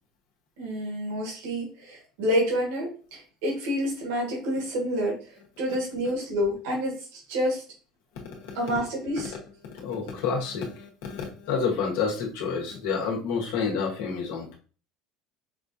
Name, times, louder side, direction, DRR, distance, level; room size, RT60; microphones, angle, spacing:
voice 1, 0.6-5.2 5.6-7.6 8.5-9.3, equal, 85° right, -2 dB, 1.6 m, -28 dB
voice 2, 8.1-14.6, left 5 dB, 85° left, -1 dB, 1.2 m, -30 dB
5.3 x 2.5 x 2.7 m, 0.39 s
cardioid pair, 175°, 0 cm